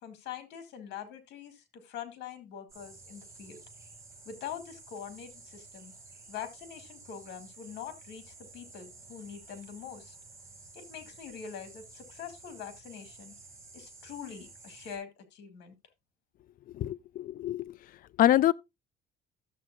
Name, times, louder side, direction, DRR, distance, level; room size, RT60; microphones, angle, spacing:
voice 1, 0.0-3.6 4.3-5.9 6.3-10.2 10.7-13.3 13.7-15.7, left 8 dB, 85° left, 2.2 m, -44 dB
sound 1, 2.7-15.0, right 3 dB, 15° right, 4.9 m, -52 dB
voice 2, 16.8-17.7 18.2-18.5, left 13 dB, 55° left, 0.4 m, -25 dB
13.0 x 7.5 x 2.4 m
cardioid pair, 110°, 17 cm